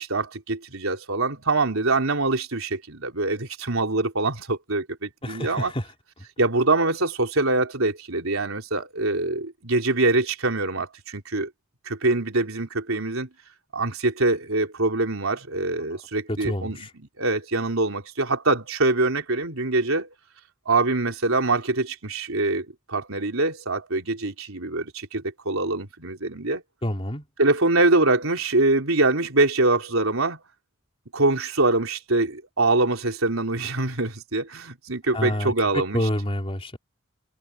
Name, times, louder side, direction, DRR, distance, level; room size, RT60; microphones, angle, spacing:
voice 1, 0.0-5.7 6.4-11.5 11.9-13.3 13.7-16.9 17.2-20.1 20.7-26.6 27.4-30.4 31.1-36.1, right 2 dB, 85° right, 3.8 m, -24 dB
voice 2, 5.2-5.9 16.3-16.9 26.8-27.3 35.1-36.8, equal, 30° left, 3.6 m, -28 dB
head